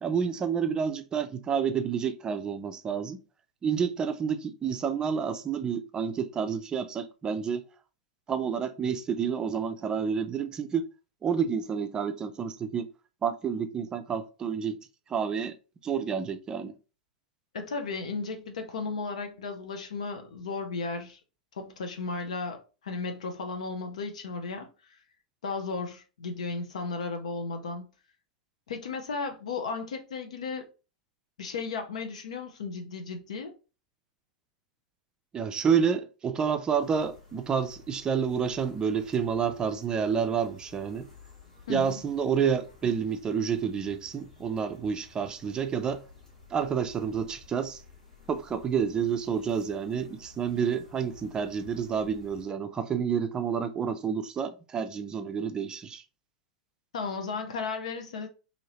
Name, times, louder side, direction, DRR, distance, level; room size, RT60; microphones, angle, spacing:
voice 1, 0.0-3.2 3.6-7.6 8.3-10.8 11.2-12.9 13.2-14.8 15.1-15.5 15.8-16.7 35.3-41.1 41.7-46.0 46.5-47.8 48.3-56.0, right 7 dB, 20° right, 0.4 m, -29 dB
voice 2, 17.5-21.2 21.5-25.0 25.4-27.8 28.7-30.7 31.4-33.5 41.7-42.0 56.9-58.3, left 4 dB, 65° left, 0.5 m, -35 dB
sound 1, 36.8-52.4, left 4 dB, 80° left, 1.1 m, -54 dB
2.8 x 2.7 x 2.8 m
figure-of-eight pair, 90°, 4 cm